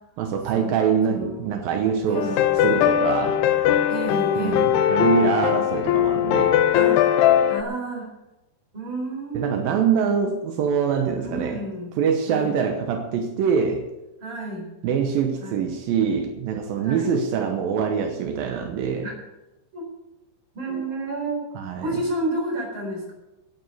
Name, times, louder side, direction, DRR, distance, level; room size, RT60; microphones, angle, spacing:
voice 1, 0.2-2.4 2.6-3.4 4.4-6.6 9.3-11.6 12.0-13.8 14.8-19.1 21.6-21.9, right 7 dB, 80° right, 4 dB, 2.1 m, -24 dB
voice 2, 1.1-1.5 2.0-2.5 3.9-4.8 6.7-7.0 7.4-8.1 8.7-9.6 11.2-11.9 12.2-12.6 14.2-14.7 15.4-15.6 16.8-17.2 19.0-19.1 19.7-19.9 20.5-21.5 21.8-23.1, right 2 dB, 25° right, -1 dB, 4.5 m, -30 dB
sound 1, 2.1-7.6, left 10 dB, 80° left, 2.3 m, -20 dB
11.0 x 8.9 x 8.2 m, 0.99 s
omnidirectional pair, 5.6 m